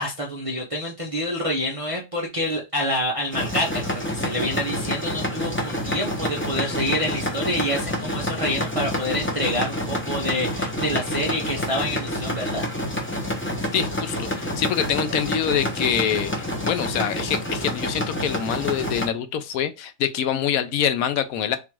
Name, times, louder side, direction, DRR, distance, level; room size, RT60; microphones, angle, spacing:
voice 1, 0.0-12.7, left 1 dB, 35° right, 0.5 m, -27 dB
sound 1, 3.3-19.1, equal, 15° left, 0.5 m, -28 dB
voice 2, 13.7-21.6, left 9 dB, 75° left, 1.0 m, -25 dB
3.8 x 2.4 x 4.4 m
omnidirectional pair, 1.5 m